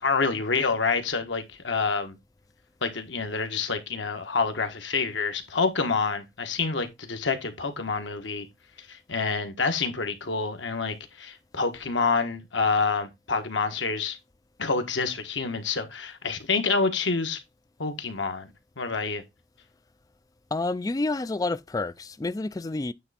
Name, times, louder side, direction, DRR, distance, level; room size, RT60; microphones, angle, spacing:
voice 1, 0.0-2.2 2.8-8.5 8.8-14.2 14.6-17.4 17.8-19.2, left 4 dB, 85° left, 1.5 m, -27 dB
voice 2, 20.5-22.9, left 2 dB, 20° left, 0.3 m, -29 dB
9.2 x 3.4 x 4.2 m
head